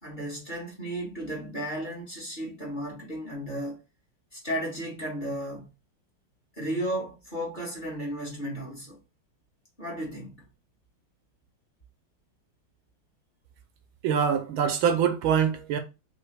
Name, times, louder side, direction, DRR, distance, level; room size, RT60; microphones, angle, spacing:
voice 1, 0.0-3.8 4.3-5.7 6.6-9.0 9.8-10.4, right 1 dB, 25° left, 1.6 m, -34 dB
voice 2, 14.0-15.8, right 7 dB, 75° right, 1.4 m, -24 dB
3.8 x 3.7 x 3.3 m
omnidirectional pair, 2.4 m